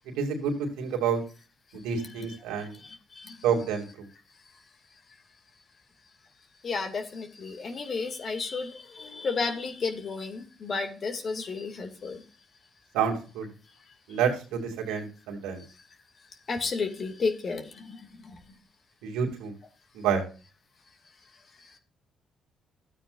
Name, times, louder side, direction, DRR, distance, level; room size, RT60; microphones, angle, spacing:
voice 1, 0.2-1.2 1.7-2.7 3.4-4.1 12.9-13.5 14.1-15.6 19.0-19.5 19.9-20.2, right 7 dB, 90° right, 2.7 m, -28 dB
voice 2, 2.6-3.4 6.6-12.2 14.1-14.2 16.5-18.4 21.6-21.7, left 4 dB, 50° left, 2.5 m, -33 dB
13.0 x 8.9 x 2.6 m
supercardioid pair, 65°, 0 cm